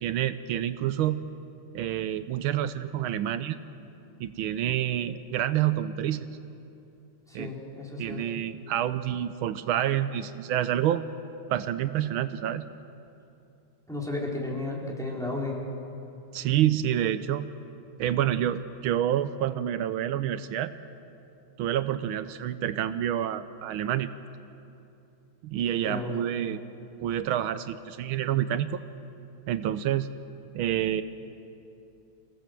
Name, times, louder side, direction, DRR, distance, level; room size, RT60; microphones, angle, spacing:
voice 1, 0.0-1.2 1.7-3.6 4.2-6.3 7.3-7.5 8.0-11.1 11.5-12.7 16.3-17.5 18.0-20.7 21.6-24.1 25.4-26.6 27.0-28.8 29.5-30.1 30.5-31.0, right 11 dB, 85° right, 12 dB, 1.5 m, -28 dB
voice 2, 7.3-8.2 13.9-15.6 25.8-26.2, left 2 dB, ahead, -3 dB, 3.3 m, -33 dB
27.0 x 16.5 x 7.6 m, 2.8 s
omnidirectional pair, 2.3 m